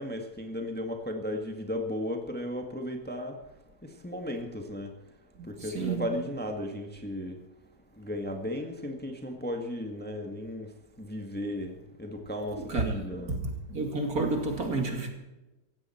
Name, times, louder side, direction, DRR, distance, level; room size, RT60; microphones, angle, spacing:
voice 1, 0.0-3.3 4.0-4.9 5.6-7.4 8.0-10.7 11.0-13.3, left 1 dB, 5° left, 1.6 m, -35 dB
voice 2, 5.4-6.1 12.5-13.4 13.7-15.1, right 3 dB, 50° right, 2.9 m, -31 dB
16.5 x 15.5 x 4.4 m
omnidirectional pair, 2.0 m